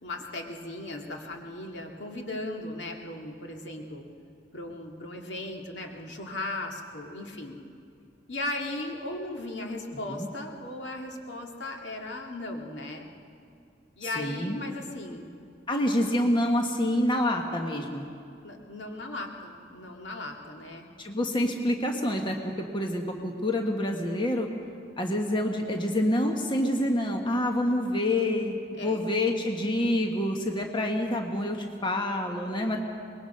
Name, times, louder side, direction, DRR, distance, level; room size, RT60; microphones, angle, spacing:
voice 1, 0.0-4.0 4.5-7.6 8.3-13.1 14.0-15.2 18.4-20.9 28.8-29.0, left 2 dB, 75° left, 2 dB, 2.1 m, -37 dB
voice 2, 14.0-14.6 15.7-18.0 21.0-24.5 25.0-28.6 28.8-32.8, left 1 dB, 25° left, 3 dB, 1.3 m, -27 dB
24.0 x 20.5 x 5.6 m, 2.4 s
head